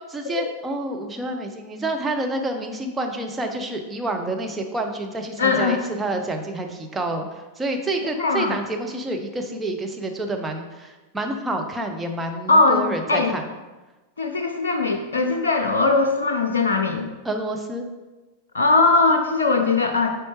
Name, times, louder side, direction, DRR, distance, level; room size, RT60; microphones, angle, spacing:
voice 1, 0.1-13.4 17.2-17.8, right 2 dB, 10° right, 3 dB, 0.8 m, -28 dB
voice 2, 5.4-5.8 8.2-8.6 12.5-13.3 14.2-17.1 18.5-20.1, left 3 dB, 70° left, 5 dB, 0.5 m, -20 dB
8.5 x 4.6 x 3.2 m, 1.2 s
figure-of-eight pair, 90°, 0 cm